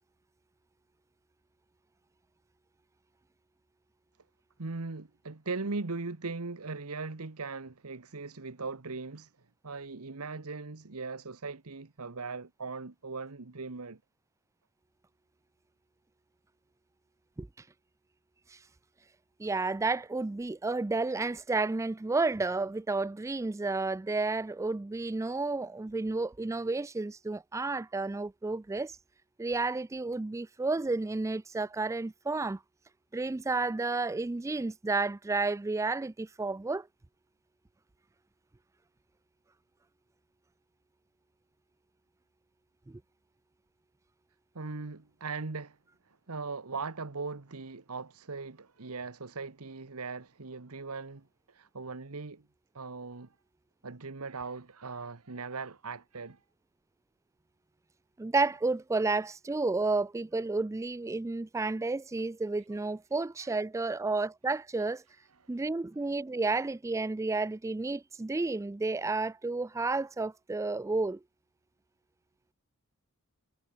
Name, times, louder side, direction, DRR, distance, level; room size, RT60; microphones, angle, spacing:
voice 1, 4.6-9.3 9.6-14.0 44.5-45.8 46.3-52.4 52.7-53.3 53.8-56.4 63.4-63.5, right 4 dB, 85° right, 1.3 m, -39 dB
voice 2, 19.4-28.9 29.4-32.6 33.1-36.9 42.9-43.0 58.2-65.0 65.5-71.2, right 3 dB, 15° right, 0.3 m, -31 dB
head